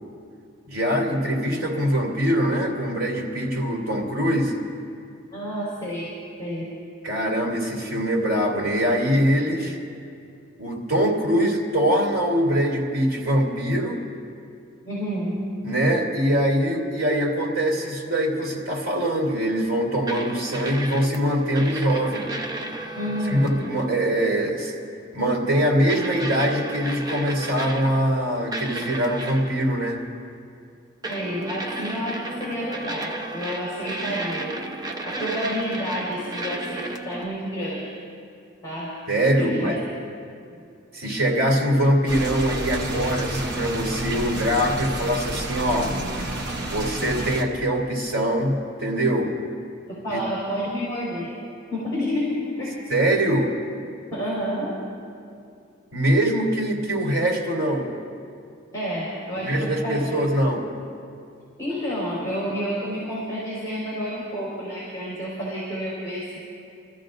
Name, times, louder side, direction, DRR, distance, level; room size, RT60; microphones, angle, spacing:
voice 1, 0.7-4.5 7.0-9.8 10.6-14.0 15.6-22.3 23.3-24.7 25.1-30.0 39.1-39.8 40.9-46.0 46.7-49.4 50.1-50.2 52.9-53.5 55.9-57.9 59.4-60.7, equal, 75° right, -2 dB, 2.9 m, -23 dB
voice 2, 5.3-6.7 14.8-15.5 22.9-23.5 31.1-34.5 35.0-38.0 38.6-39.0 39.4-39.8 49.9-51.3 51.7-52.8 53.3-53.4 54.1-54.8 58.7-60.2 61.6-66.4, equal, 20° left, -6 dB, 4.2 m, -29 dB
sound 1, 20.1-21.2 21.6-23.9 24.4-24.6 25.9-28.2 28.5-29.6 31.0-37.3, right 2 dB, 20° right, 0.8 m, -33 dB
sound 2, 42.1-47.4, right 1 dB, 55° right, 1.2 m, -30 dB
29.0 x 14.0 x 2.6 m, 2.5 s
head